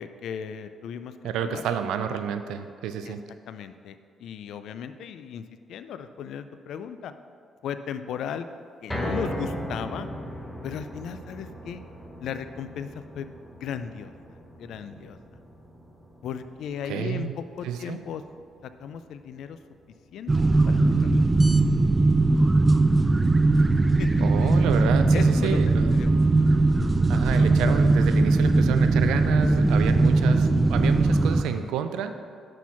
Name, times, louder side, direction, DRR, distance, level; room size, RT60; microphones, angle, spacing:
voice 1, 0.0-1.1 1.4-1.6 3.1-3.2 3.5-7.1 7.6-8.5 8.8-10.1 10.6-11.8 12.2-14.1 14.6-15.2 16.2-18.2 18.8-19.6 20.1-21.2 24.0-24.6 25.1-25.6 25.9-26.2 26.8-27.0 30.5-30.7, left 8 dB, 75° left, 10 dB, 0.4 m, -36 dB
voice 2, 1.2-3.2 16.8-17.3 17.6-18.0 24.2-25.9 27.1-32.1, right 8 dB, 90° right, 9 dB, 0.4 m, -29 dB
sound 1, 8.9-21.1 21.5-21.6 22.1-22.2, equal, 5° left, 1.0 m, -39 dB
sound 2, 20.3-31.5, right 2 dB, 25° right, 0.4 m, -20 dB
6.3 x 4.4 x 5.7 m, 2.2 s
cardioid pair, 90°, 0 cm